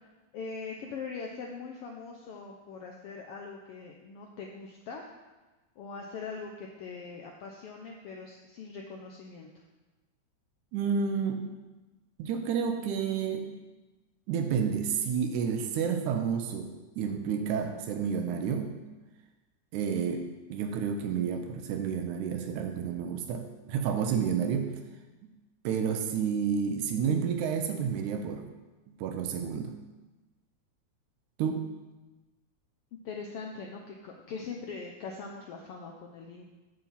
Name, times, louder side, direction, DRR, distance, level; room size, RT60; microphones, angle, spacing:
voice 1, 0.3-5.1 5.8-9.5 33.0-36.4, left 4 dB, 80° left, 1 dB, 1.3 m, -41 dB
voice 2, 10.7-11.4 12.2-13.5 14.3-16.7 17.0-18.8 19.7-20.2 20.5-24.8 25.2-25.3 25.6-28.5 29.0-29.8 31.4-31.6, right 7 dB, 85° right, 5 dB, 2.1 m, -30 dB
8.7 x 3.9 x 7.0 m, 1.2 s
omnidirectional pair, 3.4 m